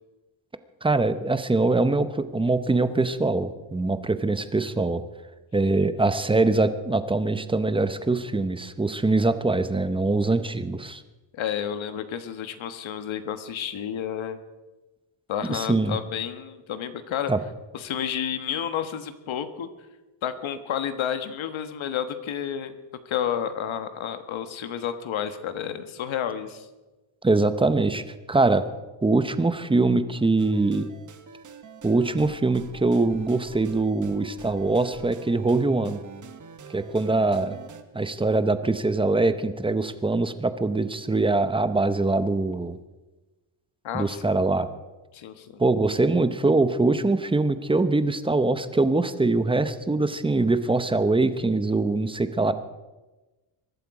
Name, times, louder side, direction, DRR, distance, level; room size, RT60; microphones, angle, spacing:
voice 1, 0.8-5.0 5.5-11.0 15.4-16.0 17.3-17.4 27.2-28.0 28.3-28.6 29.0-30.9 31.8-36.0 36.7-37.6 37.9-42.8 43.9-44.7 45.6-52.5, right 3 dB, 10° right, 11 dB, 0.7 m, -23 dB
voice 2, 11.3-14.4 15.3-17.3 17.7-19.7 20.2-22.7 23.0-26.7 43.8-44.4 45.1-45.6, left 9 dB, 70° left, 10 dB, 1.4 m, -31 dB
sound 1, 30.4-37.8, right 6 dB, 40° right, 1.1 m, -46 dB
23.0 x 12.0 x 4.8 m, 1.2 s
cardioid pair, 150°, 49 cm